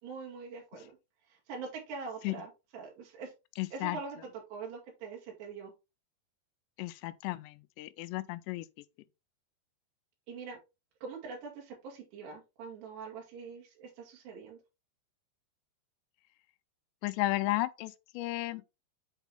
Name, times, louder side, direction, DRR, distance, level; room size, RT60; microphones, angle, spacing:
voice 1, 0.0-0.9 1.2-3.3 3.7-5.7 10.3-10.6 11.0-14.6, right 5 dB, 65° right, 4.4 m, -43 dB
voice 2, 3.6-4.0 6.8-8.7 17.0-18.6, left 18 dB, 85° left, 2.5 m, -34 dB
8.1 x 4.5 x 3.3 m
omnidirectional pair, 5.3 m